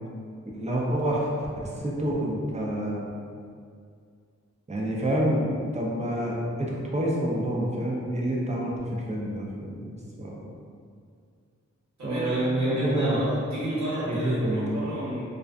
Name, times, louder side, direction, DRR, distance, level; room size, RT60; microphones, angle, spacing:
voice 1, 0.5-3.1 4.7-10.4 12.0-13.2 14.1-14.9, right 1 dB, 25° right, -3 dB, 0.5 m, -28 dB
voice 2, 12.0-15.2, equal, 70° right, -10 dB, 1.0 m, -32 dB
2.4 x 2.4 x 2.2 m, 2.2 s
wide cardioid pair, 70°, 29 cm